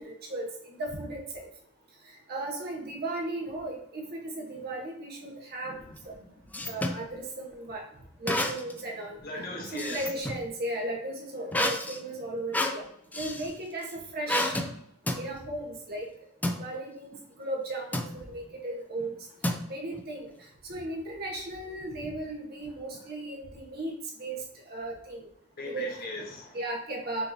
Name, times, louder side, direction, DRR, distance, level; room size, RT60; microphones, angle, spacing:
voice 1, 0.0-1.5 2.3-5.8 6.0-6.1 6.7-7.8 8.2-9.2 9.7-12.8 13.1-14.6 15.2-16.1 16.4-19.2 19.7-20.3 20.6-23.9 24.2-24.4 24.7-25.3 25.6-25.9 26.5-27.3, right 1 dB, 50° right, -1 dB, 1.1 m, -36 dB
sound 1, 5.9-7.0 8.3-8.8 9.2-10.4 11.5-13.5 14.3-14.7 15.1-15.3 16.4-16.6 17.9-18.2 19.4-20.0, left 1 dB, 10° left, 0.3 m, -30 dB
voice 2, 9.2-10.0 25.6-26.6, left 2 dB, 45° left, -1 dB, 1.3 m, -38 dB
6.1 x 3.0 x 2.7 m, 0.74 s
head